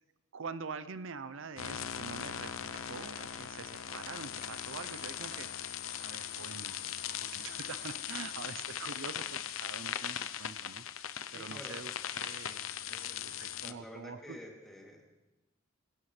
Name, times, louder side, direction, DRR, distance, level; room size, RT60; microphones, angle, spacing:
voice 1, 0.3-5.5 6.0-14.4, right 5 dB, 70° right, 12 dB, 0.6 m, -45 dB
sound 1, 1.6-13.7, left 10 dB, 85° left, 0.7 m, -40 dB
sound 2, 1.8-9.2, right 2 dB, 55° right, 4.0 m, -55 dB
voice 2, 11.3-11.9 12.9-15.1, left 1 dB, ahead, -2 dB, 2.7 m, -50 dB
25.5 x 16.5 x 3.3 m, 1.1 s
head